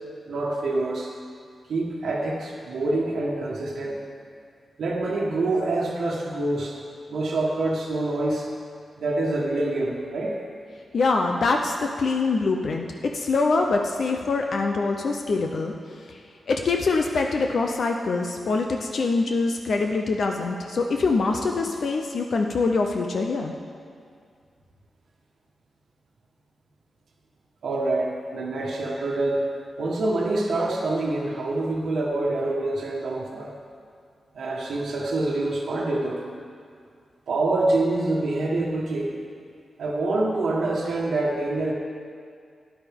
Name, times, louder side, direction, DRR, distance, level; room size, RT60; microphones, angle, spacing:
voice 1, 0.3-1.1 1.7-4.0 4.8-6.8 7.1-8.5 9.0-10.4 27.6-29.4 29.8-33.5 34.3-36.2 37.3-39.1 39.8-41.7, right 2 dB, 80° right, -2 dB, 1.3 m, -26 dB
voice 2, 10.9-16.2 16.5-23.5, left 3 dB, 55° left, 3 dB, 0.6 m, -24 dB
13.0 x 10.0 x 3.6 m, 2.2 s
wide cardioid pair, 180°, 0 cm